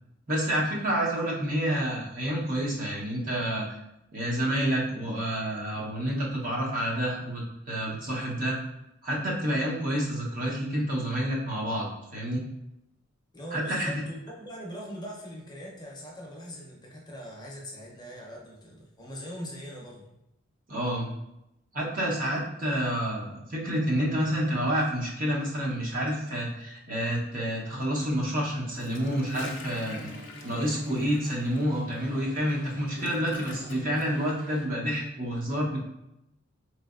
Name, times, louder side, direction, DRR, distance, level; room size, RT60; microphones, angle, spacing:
voice 1, 0.3-3.8 4.1-8.6 9.0-12.4 13.5-13.9 20.7-21.1 21.7-30.1 30.4-35.8, equal, 45° right, -4 dB, 0.9 m, -29 dB
voice 2, 13.3-20.1, equal, 20° left, -3 dB, 0.7 m, -41 dB
Gurgling / Toilet flush, 28.7-34.1, left 3 dB, 60° left, 0.5 m, -45 dB
sound 1, 28.8-34.6, equal, 65° right, 1.3 m, -44 dB
3.9 x 3.2 x 2.4 m, 0.86 s
head